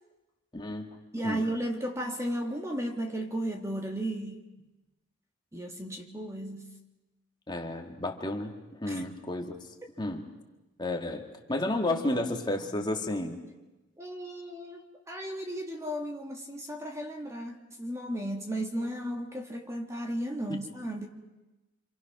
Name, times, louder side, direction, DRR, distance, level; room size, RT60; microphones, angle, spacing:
voice 1, 0.5-1.0 1.2-1.5 7.5-8.5 8.8-9.6 10.0-10.2 10.8-13.4 20.5-20.6, left 1 dB, 20° left, 3 dB, 1.9 m, -32 dB
voice 2, 1.1-4.4 5.5-6.7 8.9-9.0 11.5-11.7 12.1-12.2 12.7-12.9 14.0-21.1, right 1 dB, 15° right, 3 dB, 1.7 m, -35 dB
27.5 x 27.0 x 6.0 m, 1.0 s
head